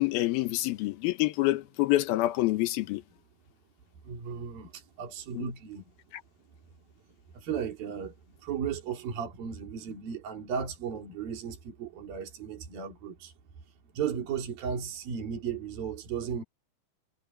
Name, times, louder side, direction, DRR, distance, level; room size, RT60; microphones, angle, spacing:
voice 1, 0.0-3.0 5.4-5.5, left 17 dB, 80° left, 2.9 m, -27 dB
voice 2, 4.0-5.9 7.3-13.3 13.9-16.4, right 7 dB, 70° right, 5.3 m, -35 dB
omnidirectional pair, 4.3 m